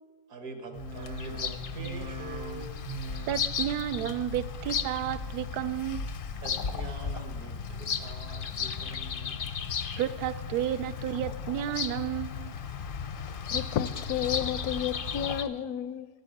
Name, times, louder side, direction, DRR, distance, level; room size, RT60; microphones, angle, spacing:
voice 1, 0.3-2.8 6.4-9.5, right 2 dB, 65° right, 5 dB, 1.8 m, -44 dB
sound 1, 0.6-6.0 6.3-6.9 7.4-8.1 8.5-9.1 9.6-10.2 10.7-11.3 11.8-11.9, right 3 dB, 30° right, 0.6 m, -45 dB
Bird vocalization bird call bird song, 0.7-15.4, left 6 dB, 60° left, 0.5 m, -35 dB
voice 2, 3.3-6.1 10.0-12.5, right 12 dB, 85° right, 14 dB, 1.1 m, -32 dB
voice 3, 13.2-16.1, left 9 dB, 80° left, 13 dB, 1.1 m, -32 dB
12.0 x 9.1 x 7.7 m, 1.5 s
omnidirectional pair, 1.6 m